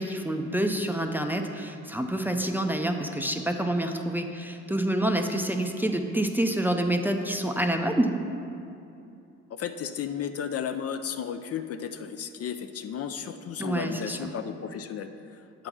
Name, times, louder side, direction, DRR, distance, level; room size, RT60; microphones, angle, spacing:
voice 1, 0.0-8.2 13.6-14.3, right 1 dB, 5° right, 4 dB, 0.5 m, -27 dB
voice 2, 9.5-15.7, left 8 dB, 50° left, 8 dB, 0.4 m, -34 dB
7.8 x 3.9 x 6.0 m, 2.7 s
cardioid pair, 80°, 30 cm